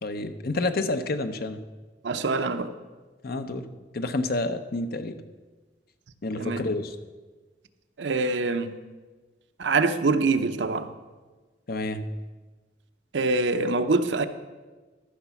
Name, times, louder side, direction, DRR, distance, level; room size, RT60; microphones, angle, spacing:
voice 1, 0.0-1.6 3.2-3.7 3.9-5.2 6.2-7.0 11.7-12.1, left 2 dB, 55° left, 9 dB, 0.7 m, -29 dB
voice 2, 2.0-2.7 6.4-6.6 8.0-8.7 9.6-10.9 13.1-14.2, right 3 dB, 75° right, 9 dB, 0.6 m, -24 dB
13.0 x 6.0 x 5.7 m, 1.3 s
head